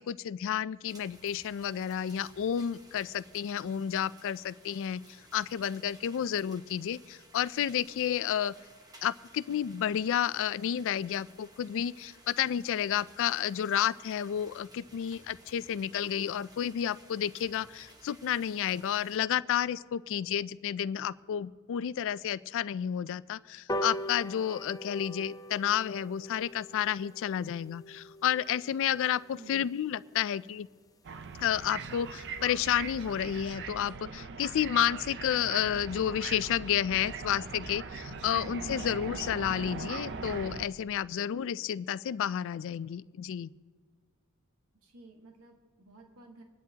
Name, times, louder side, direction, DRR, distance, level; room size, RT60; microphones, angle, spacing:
voice 1, 0.0-8.5 9.0-30.7 31.4-43.5, left 9 dB, 60° left, 18 dB, 0.3 m, -31 dB
sound 1, 0.9-19.2, right 1 dB, 15° right, 1.0 m, -57 dB
sound 2, 23.7-30.4 30.9-31.0 31.3-31.4 31.7-31.8 32.1-32.2 32.4-32.7 33.1-33.2, equal, 15° left, 0.6 m, -41 dB
voice 2, 29.3-29.7 44.8-46.4, right 2 dB, 75° right, 2 dB, 1.4 m, -53 dB
sound 3, 31.0-40.7, right 4 dB, 55° right, 0.6 m, -40 dB
25.5 x 10.5 x 2.8 m, 1.5 s
head